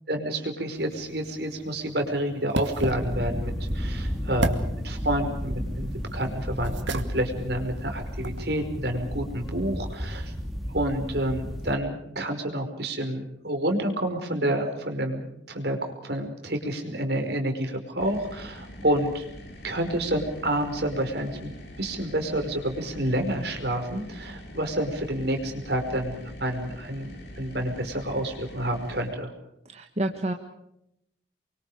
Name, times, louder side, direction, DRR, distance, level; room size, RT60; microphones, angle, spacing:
voice 1, 0.1-10.3 10.7-19.3 19.6-21.5 21.8-27.1 27.4-29.3, right 1 dB, 60° right, 5 dB, 5.2 m, -29 dB
sound 1, 0.8-8.5, right 2 dB, 80° right, 2.2 m, -36 dB
sound 2, 2.8-11.8, equal, ahead, 2.9 m, -33 dB
sound 3, 18.0-29.1, equal, 60° left, 6.7 m, -43 dB
voice 2, 29.6-30.3, right 1 dB, 35° right, 4 dB, 1.6 m, -29 dB
29.0 x 24.0 x 5.0 m, 0.80 s
head